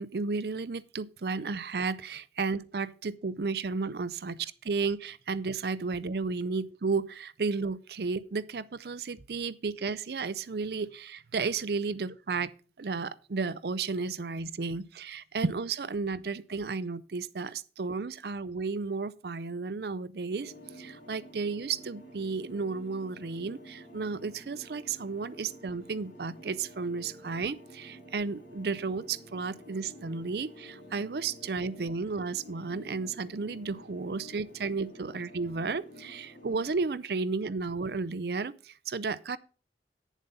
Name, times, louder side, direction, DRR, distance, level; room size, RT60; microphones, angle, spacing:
voice 1, 0.0-12.5 12.8-39.4, right 4 dB, 65° right, 0.5 m, -33 dB
sound 1, 20.3-36.7, equal, 55° left, 4.5 m, -51 dB
9.3 x 7.2 x 5.5 m
head